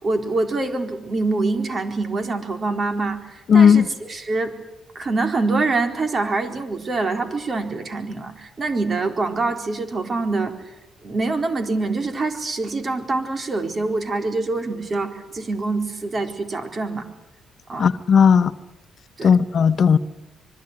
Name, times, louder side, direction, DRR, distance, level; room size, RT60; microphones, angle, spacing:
voice 1, 0.0-4.5 4.9-10.5 11.0-17.1 17.7-17.9 19.2-19.3, right 3 dB, 40° right, 4.2 m, -25 dB
voice 2, 3.5-3.8 17.8-18.5 19.2-20.0, left 7 dB, 50° left, 1.1 m, -14 dB
25.5 x 22.5 x 9.8 m
cardioid pair, 90°, 0 cm